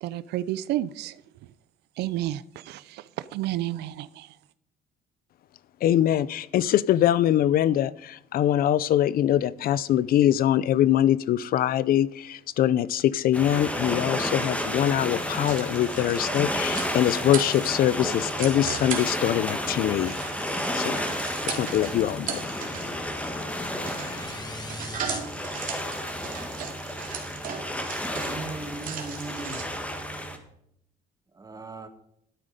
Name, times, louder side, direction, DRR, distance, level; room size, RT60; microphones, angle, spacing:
voice 1, 0.0-1.2 2.0-4.4, right 14 dB, 80° right, 0.6 m, -31 dB
voice 2, 5.8-20.2 20.5-21.0 21.5-22.6, left 11 dB, 60° left, 0.5 m, -23 dB
sound 1, 13.3-30.4, equal, 10° left, 2.0 m, -32 dB
sound 2, 15.1-29.6, right 6 dB, 55° right, 2.5 m, -38 dB
sound 3, 21.6-26.2, left 3 dB, 25° left, 1.3 m, -40 dB
voice 3, 28.1-29.7 31.3-31.9, right 3 dB, 20° right, 1.6 m, -38 dB
12.0 x 8.9 x 5.1 m
cardioid pair, 110°, 17 cm